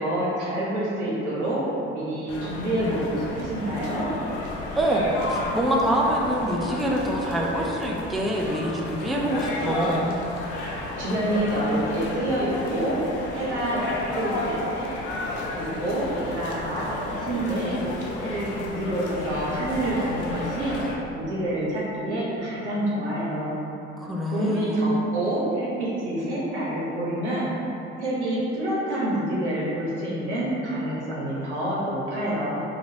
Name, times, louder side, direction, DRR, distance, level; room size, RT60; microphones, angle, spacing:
voice 1, 0.0-1.6 1.9-4.1 10.6-13.0 13.3-14.9 15.5-16.1 16.3-17.8 18.2-20.7 21.1-23.6 24.3-27.5 28.0-32.6, right 1 dB, 85° right, -7 dB, 0.8 m, -27 dB
sound 1, 2.3-20.9, left 2 dB, 60° left, 0.6 m, -32 dB
voice 2, 4.8-10.1 24.0-24.9, right 1 dB, ahead, -2 dB, 0.3 m, -25 dB
3.9 x 2.9 x 2.7 m, 3.0 s
figure-of-eight pair, 50°, 34 cm